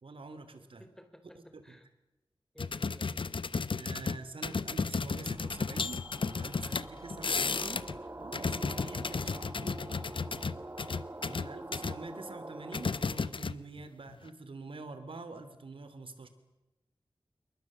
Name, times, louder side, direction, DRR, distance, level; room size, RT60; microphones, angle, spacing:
voice 1, 0.0-0.8 1.5-1.8 3.8-7.9 8.2-9.8 11.3-16.3, right 3 dB, 75° right, 11 dB, 3.0 m, -46 dB
voice 2, 0.6-1.9 2.5-3.2 6.6-8.1, equal, 5° left, 8 dB, 4.0 m, -56 dB
sound 1, 2.6-8.0 8.2-12.0 12.7-13.8 14.1-14.3, left 4 dB, 70° left, 0.9 m, -34 dB
sound 2, 5.0-13.4, right 2 dB, 30° right, 1.3 m, -46 dB
sound 3, 5.2-10.8, right 1 dB, 10° right, 5.5 m, -57 dB
28.0 x 23.0 x 7.5 m, 1.0 s
wide cardioid pair, 70°, 9 cm